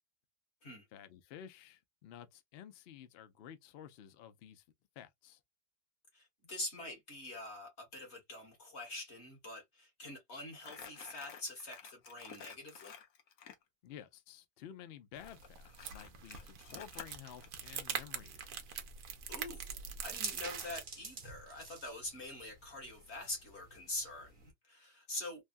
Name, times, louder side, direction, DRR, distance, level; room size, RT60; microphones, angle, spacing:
voice 1, 0.9-4.6 5.0-5.4 13.8-18.8, left 9 dB, 80° left, 0.5 m, -52 dB
voice 2, 6.1-12.9 19.3-25.4, left 2 dB, 45° left, 1.6 m, -45 dB
Crumpling crinkling, 10.5-13.6 15.3-17.5, left 8 dB, 60° left, 1.1 m, -52 dB
sound 1, 15.2-20.8, right 7 dB, 65° right, 1.0 m, -44 dB
sound 2, 16.3-24.5, right 3 dB, 40° right, 1.1 m, -51 dB
3.3 x 2.2 x 2.4 m
omnidirectional pair, 1.8 m